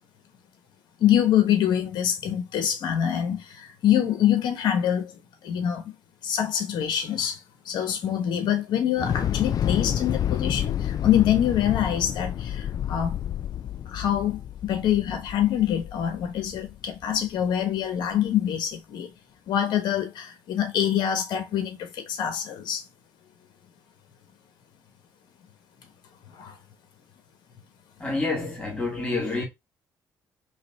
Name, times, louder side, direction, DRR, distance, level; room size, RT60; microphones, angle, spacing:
voice 1, 1.0-5.1 5.4-5.8 6.2-7.4 7.6-13.2 13.9-19.1 19.5-22.8 26.4-26.5, left 10 dB, 75° left, 1.3 m, -25 dB
Thunder / Explosion, 9.0-17.2, left 10 dB, 55° left, 0.4 m, -29 dB
voice 2, 28.0-29.4, left 3 dB, 15° left, 2.0 m, -28 dB
4.1 x 3.2 x 4.1 m
cardioid pair, 80°, 8 cm